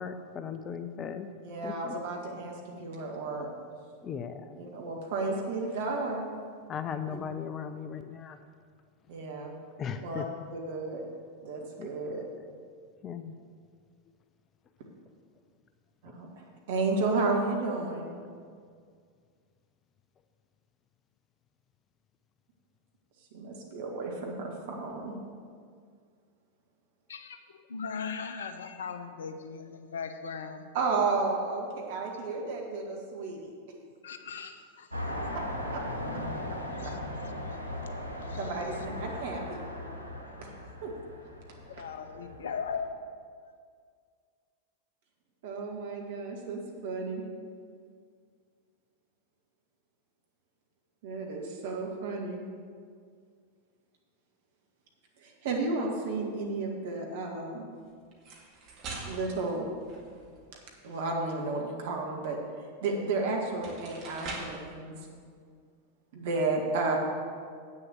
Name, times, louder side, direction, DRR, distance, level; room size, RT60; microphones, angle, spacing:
voice 1, 0.0-1.3 1.6-2.0 4.0-4.6 6.7-8.4 9.8-10.3 11.8-11.9 13.0-13.3 16.1-16.2, left 7 dB, 25° left, 10 dB, 0.5 m, -37 dB
voice 2, 1.4-3.5 4.6-6.3 7.1-7.2 9.1-9.5 10.0-10.2 10.5-11.0 11.4-12.2 16.0-16.3 16.7-18.1 23.3-25.1 30.7-33.5 35.3-35.4 35.7-35.8 38.4-39.6 40.4-40.5 40.8-40.9 45.4-47.2 51.0-52.4 55.2-57.7 59.1-59.7 60.8-64.9 66.1-67.0, right 3 dB, 55° right, 0 dB, 1.8 m, -32 dB
voice 3, 27.1-30.7 34.0-35.0 36.0-36.1 36.5-37.9 38.1-38.9 41.7-43.0, left 6 dB, 65° left, 8 dB, 0.7 m, -39 dB
sound 1, 34.9-42.8, left 1 dB, 85° left, 1.2 m, -38 dB
sound 2, 58.1-60.5 62.9-63.0 63.5-64.7, right 3 dB, 40° right, 2.0 m, -43 dB
8.5 x 6.7 x 7.2 m, 2.1 s
figure-of-eight pair, 90°, 0 cm